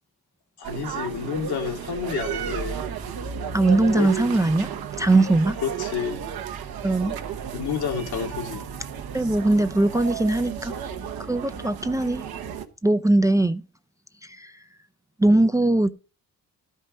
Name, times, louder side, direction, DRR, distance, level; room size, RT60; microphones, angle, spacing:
voice 1, 0.6-2.8 3.9-4.1 5.6-6.2 7.5-8.6, left 7 dB, 85° left, 2.5 m, -29 dB
sound 1, 0.6-12.7, right 8 dB, 75° right, 1.2 m, -33 dB
voice 2, 3.5-4.7 5.0-5.6 6.8-7.2 9.1-10.7 11.3-12.3 12.8-13.6 14.3-14.5 15.2-15.9, right 2 dB, 10° right, 0.4 m, -20 dB
12.0 x 5.5 x 5.3 m
cardioid pair, 90°, 37 cm